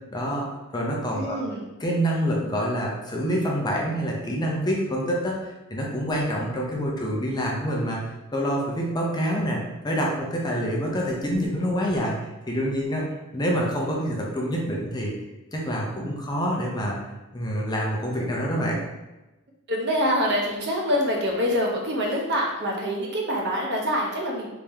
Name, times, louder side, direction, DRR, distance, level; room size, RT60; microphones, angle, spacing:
voice 1, 0.1-0.5 0.7-1.4 1.8-8.0 8.3-9.6 9.8-12.1 12.5-13.1 13.3-15.1 15.5-17.0 17.3-18.8, equal, 20° left, -2 dB, 0.5 m, -26 dB
voice 2, 1.1-1.7 19.7-24.5, equal, 50° right, -1 dB, 0.7 m, -25 dB
3.4 x 2.8 x 3.4 m, 1.1 s
head